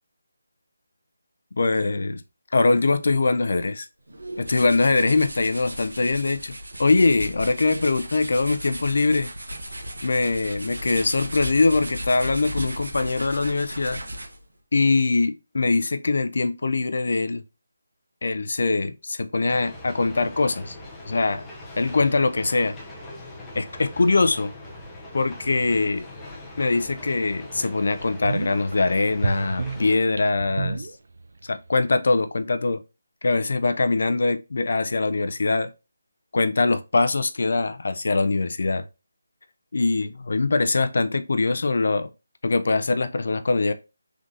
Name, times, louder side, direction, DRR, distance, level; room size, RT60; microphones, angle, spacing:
voice 1, 1.6-2.2 2.5-3.9 4.4-6.5 6.8-9.3 10.0-14.0 14.7-17.4 18.2-20.8 21.1-21.4 21.8-22.8 23.5-24.5 25.1-26.0 26.6-30.9 31.5-32.8 33.2-35.7 36.3-38.8 39.7-42.1 42.4-43.7, left 3 dB, 60° left, 0.5 m, -22 dB
sound 1, 4.1-14.5, right 1 dB, 85° right, 1.1 m, -36 dB
sound 2, 19.5-30.0, left 1 dB, 10° left, 0.6 m, -41 dB
sound 3, 26.9-27.0 27.5-27.6 28.0-28.8 29.2-31.4 31.7-31.8, right 3 dB, 65° right, 0.6 m, -29 dB
3.8 x 3.5 x 2.6 m
figure-of-eight pair, 160°, 0 cm